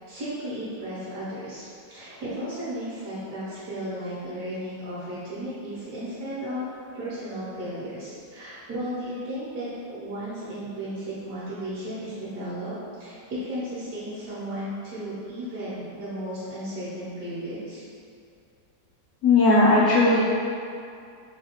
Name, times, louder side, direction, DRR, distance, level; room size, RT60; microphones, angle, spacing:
voice 1, 0.1-17.8, equal, 60° right, -11 dB, 1.2 m, -34 dB
voice 2, 19.2-20.2, left 2 dB, 85° left, -8 dB, 0.6 m, -17 dB
3.2 x 2.8 x 2.8 m, 2.5 s
omnidirectional pair, 1.9 m